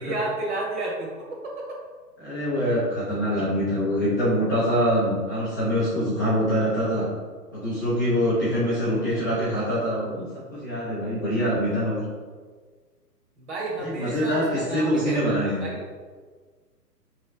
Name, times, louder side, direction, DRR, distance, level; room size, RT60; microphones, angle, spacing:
voice 1, 0.0-1.8 13.4-15.8, right 2 dB, 45° right, -2 dB, 1.4 m, -32 dB
voice 2, 2.2-7.1 7.5-12.0 13.8-15.7, equal, 15° left, -12 dB, 0.5 m, -24 dB
3.6 x 3.3 x 4.3 m, 1.5 s
hypercardioid pair, 135°, 49 cm